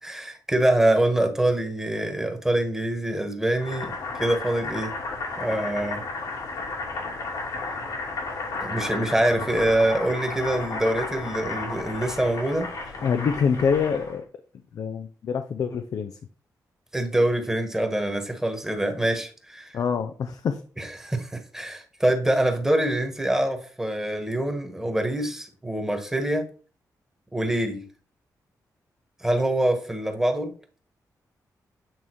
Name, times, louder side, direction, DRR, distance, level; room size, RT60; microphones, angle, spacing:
voice 1, 0.0-3.9 4.2-4.9 5.4-6.0 8.6-12.7 16.9-19.8 20.8-26.5 27.3-27.8 29.2-30.5, right 1 dB, 5° right, 5 dB, 1.4 m, -25 dB
Boiling, 3.5-14.2, left 3 dB, 80° left, 2.9 m, -33 dB
voice 2, 13.0-14.2 14.7-16.2 19.7-20.6, left 6 dB, 65° left, 8 dB, 0.6 m, -25 dB
8.8 x 3.6 x 4.6 m, 0.39 s
cardioid pair, 115°, 6 cm